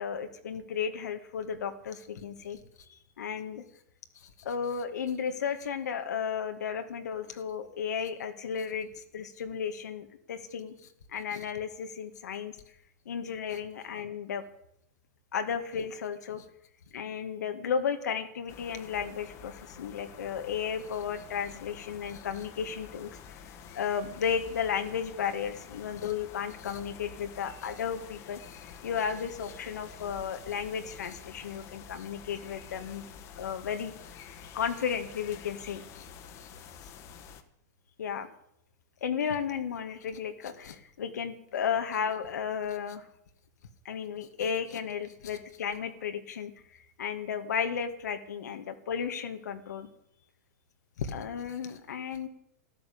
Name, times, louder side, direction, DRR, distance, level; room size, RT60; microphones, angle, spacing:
voice 1, 0.0-2.6 3.2-3.6 4.2-12.5 13.1-14.4 15.3-16.4 16.9-23.4 23.7-33.0 33.4-33.9 34.5-36.0 36.4-36.5 38.0-38.3 39.0-43.1 43.8-49.9 51.0-52.3, left 7 dB, 85° left, 7 dB, 2.1 m, -34 dB
sound 1, 18.5-37.4, left 6 dB, 30° left, 1.6 m, -48 dB
13.0 x 12.5 x 8.7 m, 0.72 s
supercardioid pair, 150°, 9 cm